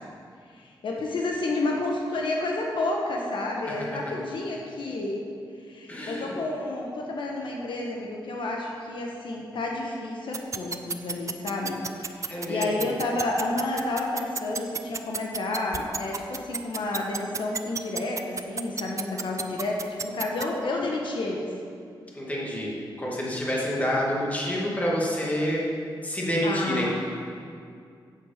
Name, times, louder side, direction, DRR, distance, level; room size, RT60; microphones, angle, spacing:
voice 1, 0.5-5.3 5.6-21.5 26.4-26.9, left 2 dB, 75° left, -1 dB, 1.4 m, -30 dB
voice 2, 5.9-6.3 12.3-12.9 22.1-25.6 26.0-26.9, equal, 15° left, -4 dB, 2.4 m, -28 dB
sound 1, 10.3-20.4, right 5 dB, 40° right, 0.6 m, -30 dB
8.3 x 8.3 x 7.5 m, 2.3 s
wide cardioid pair, 125°, 8 cm